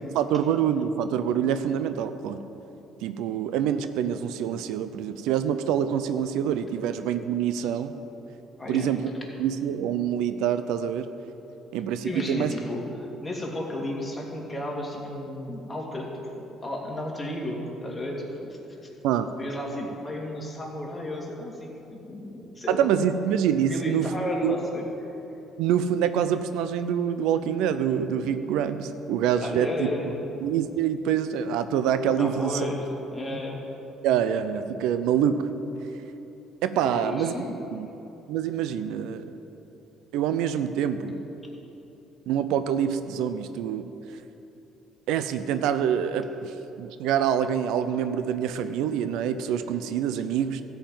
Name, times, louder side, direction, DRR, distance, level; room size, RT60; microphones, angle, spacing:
voice 1, 0.1-2.4 3.0-7.9 8.7-9.1 9.4-11.1 11.7-12.5 19.0-19.3 22.7-24.1 24.4-24.6 25.6-29.9 30.4-32.6 33.3-33.4 34.0-35.4 36.6-37.3 37.7-37.9 38.3-39.3 40.1-41.2 42.3-43.9 45.1-46.5 46.8-50.6, right 9 dB, 85° right, 11 dB, 0.5 m, -26 dB
voice 2, 8.6-8.9 12.0-18.6 19.4-22.9 23.6-24.8 29.4-30.3 32.2-32.9 33.1-33.6 36.8-37.5, left 1 dB, 15° left, -2 dB, 2.6 m, -33 dB
13.0 x 5.7 x 9.1 m, 2.9 s
cardioid pair, 95°, 0 cm